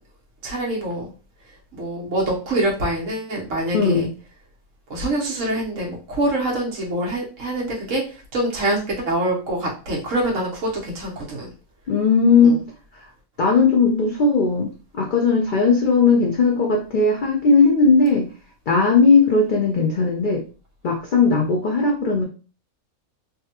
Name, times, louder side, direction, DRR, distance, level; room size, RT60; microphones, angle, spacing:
voice 1, 0.4-1.1 1.7-4.1 4.9-8.0 8.3-11.5 12.4-12.6, right 1 dB, 65° right, -3 dB, 1.4 m, -25 dB
voice 2, 3.7-4.1 11.9-12.6 13.4-14.7 14.9-18.3 18.7-20.4 20.8-22.2, left 4 dB, 75° left, 0 dB, 0.4 m, -17 dB
3.4 x 2.2 x 2.8 m, 0.35 s
omnidirectional pair, 1.5 m